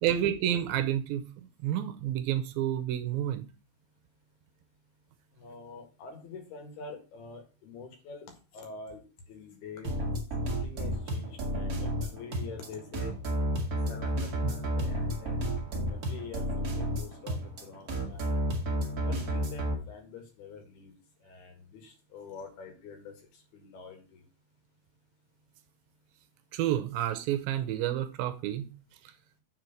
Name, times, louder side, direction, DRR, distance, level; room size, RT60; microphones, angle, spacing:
voice 1, 0.0-3.4 14.4-14.5 26.5-28.7, right 11 dB, 80° right, 2.3 m, -30 dB
voice 2, 5.4-8.3 8.5-9.9 10.6-13.1 13.9-15.4 15.9-18.4 19.0-20.9 21.2-24.2, left 4 dB, 85° left, 3.8 m, -46 dB
sound 1, 9.8-19.7, right 1 dB, 55° right, 1.0 m, -31 dB
6.9 x 4.4 x 6.5 m
omnidirectional pair, 4.4 m